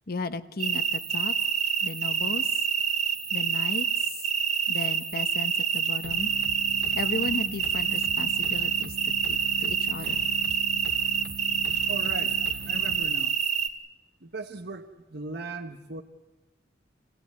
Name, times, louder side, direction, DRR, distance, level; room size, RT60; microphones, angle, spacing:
voice 1, 0.1-1.3 1.8-2.5 3.3-4.2 4.7-6.3 6.9-10.3, left 3 dB, 55° left, 11 dB, 1.1 m, -35 dB
sound 1, 0.6-13.7, right 7 dB, 40° right, 1.4 m, -27 dB
sound 2, 6.0-13.0, right 1 dB, 80° right, 1.9 m, -41 dB
voice 2, 11.9-12.4 12.7-13.4 14.2-16.0, right 3 dB, 60° right, 5 dB, 1.2 m, -38 dB
27.0 x 16.5 x 9.5 m, 1.1 s
head